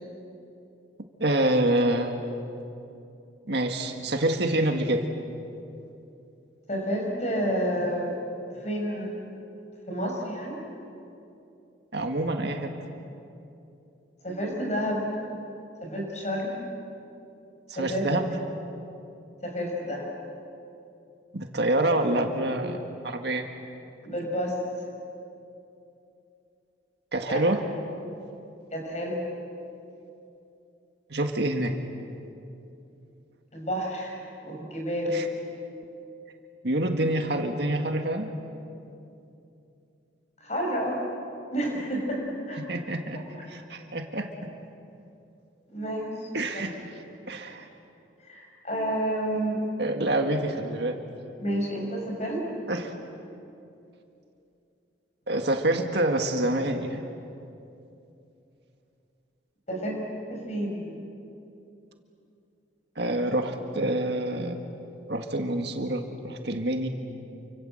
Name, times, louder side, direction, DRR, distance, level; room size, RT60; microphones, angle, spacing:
voice 1, 1.2-2.2 3.5-5.1 11.9-12.7 17.8-18.3 21.3-23.4 27.1-27.6 31.1-31.8 35.1-35.3 36.6-38.3 42.6-44.3 46.3-46.7 47.3-47.7 49.8-51.0 52.7-52.9 55.3-57.0 63.0-64.6 65.1-66.9, right 1 dB, 60° right, 4 dB, 1.9 m, -27 dB
voice 2, 6.7-8.1 8.6-9.1 9.9-10.6 14.2-15.0 15.8-16.6 17.7-18.0 19.4-20.1 24.0-24.6 27.3-27.6 28.7-29.2 33.5-34.2 34.4-35.2 40.4-41.0 41.5-42.6 43.4-43.5 45.7-46.3 48.3-49.6 51.4-52.4 59.7-60.0 60.3-61.0, equal, 35° left, 0 dB, 6.4 m, -30 dB
29.0 x 25.5 x 7.9 m, 2.7 s
head